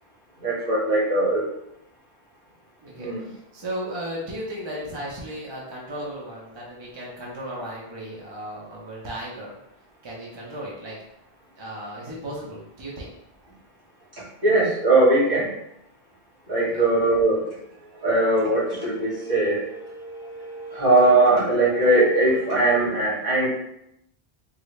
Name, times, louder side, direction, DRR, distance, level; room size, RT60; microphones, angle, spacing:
voice 1, 0.4-1.4 3.0-3.2 14.4-15.5 16.5-17.4 18.0-23.5, right 2 dB, 60° right, -9 dB, 1.8 m, -20 dB
voice 2, 2.8-9.6 10.0-11.0 11.6-13.1 16.6-16.9, right 1 dB, 30° right, -5 dB, 0.7 m, -35 dB
3.9 x 2.2 x 3.1 m, 0.81 s
omnidirectional pair, 1.1 m